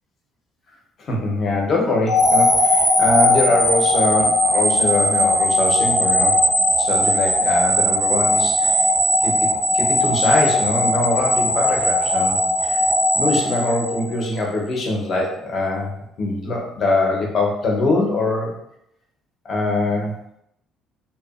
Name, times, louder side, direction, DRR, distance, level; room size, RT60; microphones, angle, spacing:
voice 1, 1.0-6.4 6.8-8.9 9.2-9.5 9.7-12.8 13.2-15.9 16.2-18.6 19.4-20.1, left 2 dB, 40° left, -1 dB, 0.7 m, -22 dB
sound 1, 2.1-14.2, left 1 dB, 5° right, 0.5 m, -18 dB
2.7 x 2.2 x 2.3 m, 0.77 s
cardioid pair, 135°, 0 cm